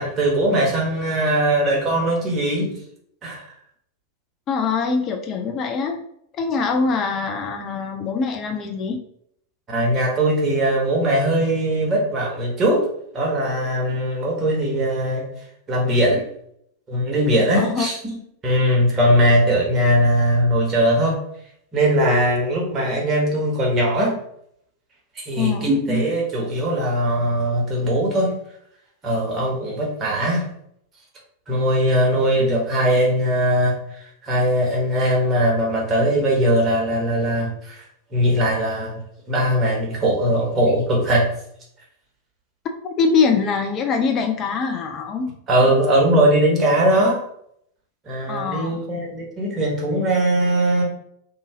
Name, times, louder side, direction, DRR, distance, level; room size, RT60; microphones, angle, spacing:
voice 1, 0.0-2.7 3.2-3.4 9.7-12.8 13.1-15.2 15.7-16.2 16.9-18.0 18.4-21.2 21.7-24.2 25.1-28.3 29.0-30.4 31.5-37.8 38.1-39.0 39.3-41.3 45.5-47.2 48.1-50.8, right 1 dB, 25° right, -2 dB, 1.2 m, -20 dB
voice 2, 4.5-6.0 6.4-9.0 17.6-17.9 25.4-25.7 42.8-45.3 48.3-48.8, left 5 dB, 30° left, 4 dB, 0.4 m, -23 dB
2.7 x 2.6 x 3.4 m, 0.70 s
figure-of-eight pair, 90°, 0 cm